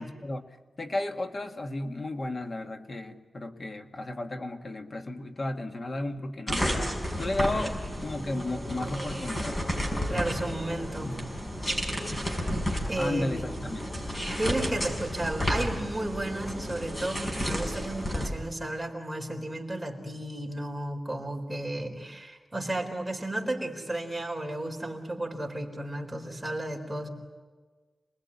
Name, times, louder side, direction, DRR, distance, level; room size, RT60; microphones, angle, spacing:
voice 1, 0.0-6.9 7.2-9.6 13.0-14.1, left 2 dB, 40° left, 5 dB, 1.8 m, -34 dB
sound 1, 6.5-18.3, equal, 25° left, 5.7 m, -32 dB
voice 2, 10.1-11.2 12.9-13.6 14.4-27.1, right 1 dB, 5° right, 1 dB, 4.1 m, -33 dB
28.0 x 20.0 x 9.8 m, 1.4 s
wide cardioid pair, 155°, 0 cm